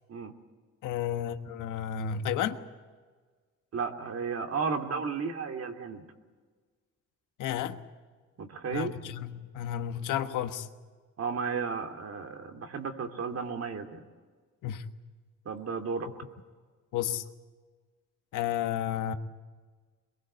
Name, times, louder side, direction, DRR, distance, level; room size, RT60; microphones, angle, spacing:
voice 1, 0.8-2.6 7.4-7.8 8.7-10.7 14.6-14.8 16.9-17.2 18.3-19.1, left 10 dB, 85° left, 1.4 m, -32 dB
voice 2, 3.7-6.0 8.4-9.0 11.2-14.0 15.4-16.1, right 5 dB, 55° right, 2.8 m, -33 dB
23.0 x 22.0 x 8.0 m
cardioid pair, 90°, 30 cm